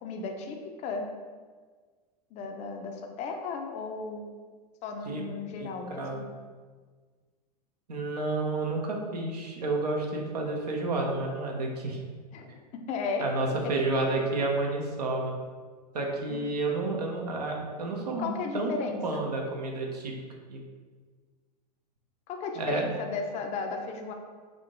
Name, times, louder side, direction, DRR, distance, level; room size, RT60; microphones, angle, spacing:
voice 1, 0.0-1.1 2.3-4.3 4.8-6.3 12.3-13.3 13.6-13.8 16.3-16.4 18.2-19.3 22.3-24.1, left 4 dB, 35° left, 4 dB, 0.5 m, -35 dB
voice 2, 5.6-6.3 7.9-12.0 13.2-15.4 15.9-18.7 19.0-20.1 20.5-20.6 22.6-22.9, right 2 dB, 75° right, 0 dB, 0.8 m, -30 dB
3.7 x 2.6 x 3.6 m, 1.5 s
figure-of-eight pair, 90°, 21 cm